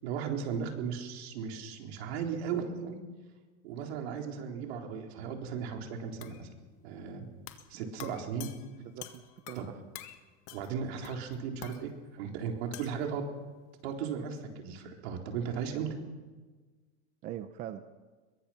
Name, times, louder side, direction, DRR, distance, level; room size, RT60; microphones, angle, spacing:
voice 1, 0.0-3.0 3.6-6.5 6.8-7.3 7.7-8.5 9.6-9.7 10.5-13.3 13.8-15.9, right 6 dB, 60° right, 2 dB, 4.0 m, -36 dB
sound 1, 6.2-6.5 7.5-7.7 8.0-9.7 9.9-10.2 10.5-10.8 11.0-11.8 12.7-13.0, left 13 dB, 45° left, 1.8 m, -47 dB
voice 2, 7.7-8.1 8.8-9.8 17.2-17.9, right 11 dB, 20° right, 10 dB, 0.6 m, -43 dB
23.0 x 22.5 x 5.8 m, 1.3 s
supercardioid pair, 165°, 35 cm